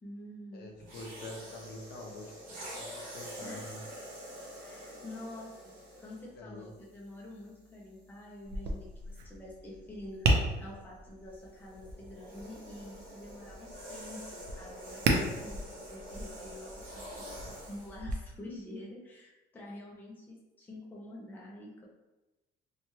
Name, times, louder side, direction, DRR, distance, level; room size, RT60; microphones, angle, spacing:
voice 1, 0.0-0.9 3.4-3.8 4.6-10.3 10.6-21.9, left 1 dB, 10° left, -3 dB, 0.4 m, -47 dB
voice 2, 0.5-2.3 2.8-3.8 6.4-6.7, left 2 dB, 60° left, 1 dB, 0.5 m, -46 dB
sound 1, 0.8-6.3 7.1-7.4 11.3-18.0, equal, 45° right, 1.0 m, -46 dB
Tap, 8.4-18.1, right 2 dB, 65° right, 0.5 m, -35 dB
2.8 x 2.2 x 2.9 m, 1.1 s
cardioid pair, 155°, 18 cm